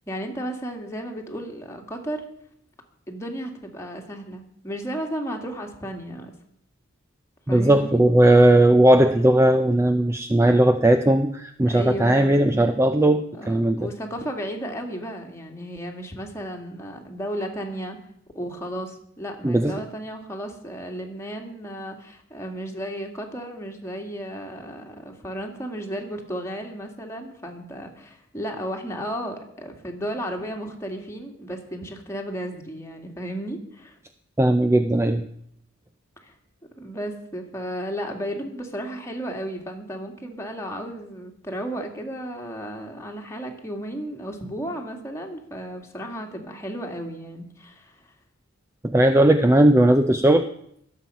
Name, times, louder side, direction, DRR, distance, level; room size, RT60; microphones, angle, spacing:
voice 1, 0.1-2.2 3.1-6.4 7.5-8.0 11.7-12.7 13.3-18.0 18.3-34.0 36.2-36.3 36.8-48.0, equal, 15° left, 2 dB, 2.1 m, -34 dB
voice 2, 7.5-13.9 19.4-19.7 34.4-35.2 48.8-50.4, right 1 dB, 15° right, 8 dB, 0.5 m, -17 dB
21.5 x 7.6 x 5.6 m, 0.71 s
head